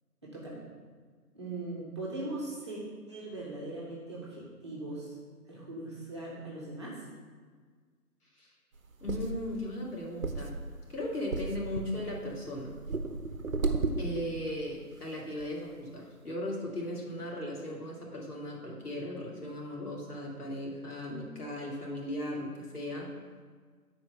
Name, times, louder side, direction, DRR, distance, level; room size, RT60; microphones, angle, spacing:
voice 1, 0.2-0.6 1.3-2.8 3.1-5.1 5.5-7.0, right 2 dB, 20° right, -6 dB, 1.1 m, -40 dB
sound 1, 8.8-14.5 15.0-15.1 15.4-15.5, right 3 dB, 60° right, 0.8 m, -34 dB
voice 2, 9.0-10.5 10.9-12.7 14.0-23.1, left 1 dB, 70° left, -2 dB, 2.4 m, -37 dB
8.4 x 4.5 x 5.5 m, 1.6 s
figure-of-eight pair, 155°, 47 cm